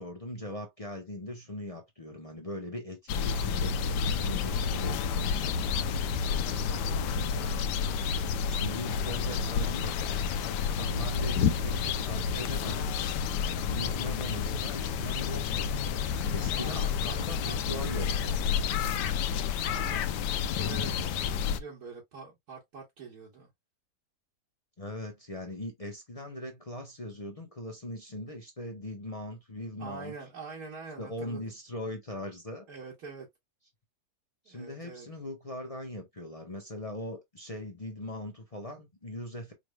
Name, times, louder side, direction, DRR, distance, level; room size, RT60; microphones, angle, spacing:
voice 1, 0.0-5.7 6.3-7.5 8.5-12.9 13.7-15.7 16.3-18.4 24.8-30.1 31.0-32.7 34.5-39.5, left 1 dB, 35° left, 0.5 m, -40 dB
sound 1, 3.1-21.6, left 6 dB, 80° left, 1.2 m, -30 dB
voice 2, 16.5-18.1 19.7-20.1 20.5-21.2 21.5-23.5 29.8-31.4 32.7-33.3 34.4-35.1, right 5 dB, 65° right, 1.6 m, -45 dB
5.2 x 3.3 x 2.2 m
omnidirectional pair, 1.8 m